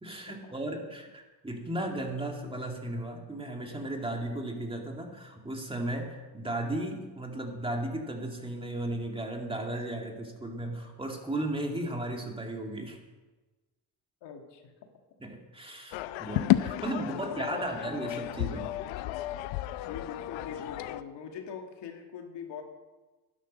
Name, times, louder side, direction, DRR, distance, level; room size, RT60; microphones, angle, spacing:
voice 1, 0.0-13.0 15.2-18.7, right 1 dB, 10° right, 2 dB, 2.3 m, -35 dB
voice 2, 14.2-14.6 16.9-17.8 19.8-22.6, left 7 dB, 65° left, 3 dB, 2.2 m, -43 dB
sound 1, 15.9-21.0, left 15 dB, 80° left, 0.7 m, -32 dB
11.5 x 11.0 x 6.3 m, 1.2 s
cardioid pair, 105°, 45 cm